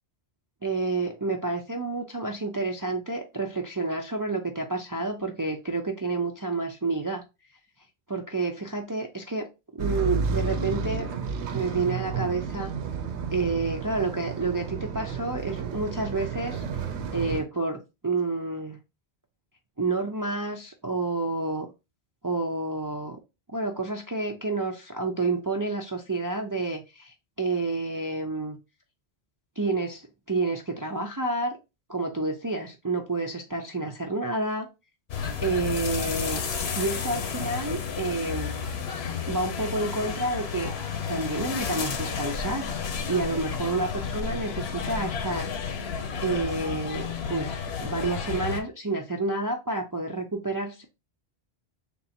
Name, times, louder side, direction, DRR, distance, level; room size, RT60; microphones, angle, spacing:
voice 1, 0.6-7.2 8.1-11.1 11.5-12.7 13.3-18.8 19.8-21.7 22.2-23.2 23.5-28.6 29.6-31.6 31.9-34.7 35.4-36.4 36.8-38.5 39.2-40.7 41.1-45.5 46.2-50.8, right 3 dB, 30° right, 0.4 m, -29 dB
sound 1, 9.8-17.4, right 5 dB, 90° right, 0.9 m, -31 dB
sound 2, 35.1-48.6, left 6 dB, 75° left, 1.0 m, -32 dB
3.6 x 2.8 x 4.2 m
omnidirectional pair, 1.1 m